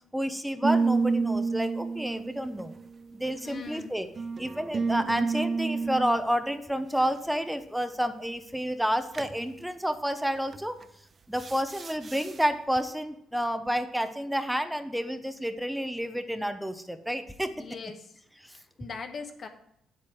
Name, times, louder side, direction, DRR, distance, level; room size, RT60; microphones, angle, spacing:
voice 1, 0.1-2.8 3.1-4.1 4.4-10.8 11.3-17.7 18.4-18.5, equal, 5° right, 9 dB, 0.8 m, -30 dB
sound 1, 0.6-3.5 4.2-6.2 9.1-9.4 10.5-10.8 11.3-12.4, right 4 dB, 40° right, 0.4 m, -29 dB
voice 2, 3.4-3.9 17.5-18.2 18.5-19.5, left 4 dB, 50° left, 6 dB, 1.2 m, -41 dB
9.0 x 7.7 x 4.5 m, 0.74 s
cardioid pair, 90°, 0 cm